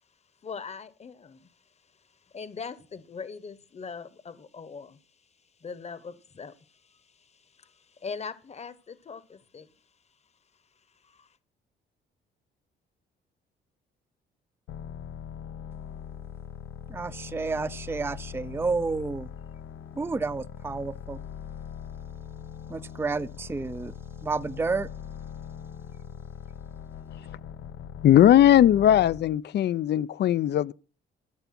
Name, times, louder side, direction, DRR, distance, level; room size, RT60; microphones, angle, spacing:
voice 1, 0.4-1.5 2.3-5.0 5.6-9.7 11.0-11.3, left 5 dB, 35° left, 1.1 m, -41 dB
sound 1, 14.7-29.4, left 8 dB, 85° left, 0.8 m, -41 dB
voice 2, 16.9-19.3 20.0-21.2 22.7-23.9 24.2-24.9, right 4 dB, 10° right, 0.4 m, -30 dB
voice 3, 28.0-30.7, left 11 dB, 60° left, 0.5 m, -19 dB
14.0 x 7.0 x 6.0 m
cardioid pair, 90°, 20 cm